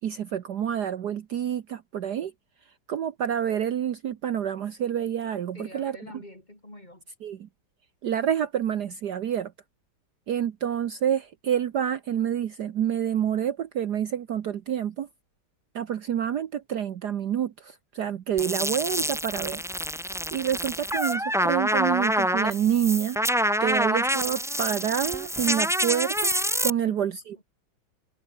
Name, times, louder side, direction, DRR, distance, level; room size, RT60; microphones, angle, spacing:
voice 1, 0.0-2.3 2.9-6.0 7.2-7.5 8.0-9.5 10.3-15.1 15.7-19.6 19.9-23.2 23.6-27.4, right 9 dB, 60° right, 1.5 m, -28 dB
voice 2, 5.5-7.1 26.7-27.1 27.4-27.5, left 1 dB, 20° left, 5.2 m, -46 dB
sound 1, 18.4-26.7, equal, ahead, 0.9 m, -27 dB
omnidirectional pair, 2.2 m